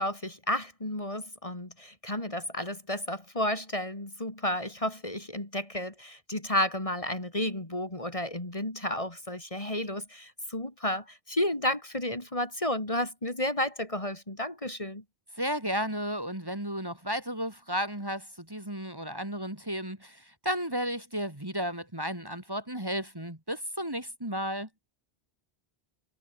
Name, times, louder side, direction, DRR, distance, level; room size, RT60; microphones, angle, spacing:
voice 1, 0.0-15.0, left 1 dB, 30° left, 3.3 m, -32 dB
voice 2, 15.3-24.7, equal, 20° right, 3.2 m, -33 dB
omnidirectional pair, 1.1 m